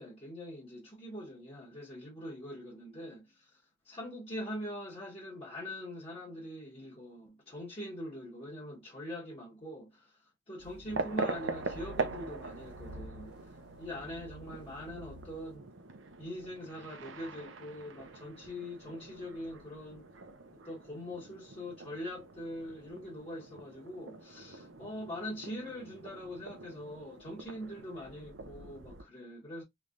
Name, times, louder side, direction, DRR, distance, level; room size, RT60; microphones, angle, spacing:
voice 1, 0.0-3.6 3.8-10.2 10.5-13.4 13.8-15.6 16.2-20.1 20.6-29.6, left 1 dB, 30° left, 1.2 m, -43 dB
sound 1, 10.6-15.6, equal, 65° left, 1.5 m, -50 dB
sound 2, 10.9-29.0, right 4 dB, 85° right, 0.7 m, -43 dB
3.3 x 3.3 x 2.5 m
head